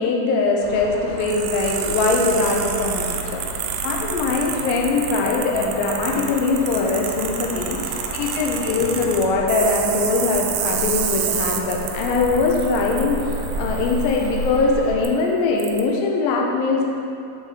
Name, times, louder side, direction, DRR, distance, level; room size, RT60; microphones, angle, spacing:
voice 1, 0.0-3.4 3.8-16.8, left 3 dB, 85° left, -1 dB, 2.1 m, -22 dB
sound 1, 0.6-15.0, right 1 dB, 60° left, 3.4 m, -32 dB
sound 2, 1.2-14.6 15.1-15.2 15.6-15.8, right 9 dB, 85° right, 2.8 m, -29 dB
8.0 x 7.2 x 3.7 m, 2.7 s
omnidirectional pair, 5.2 m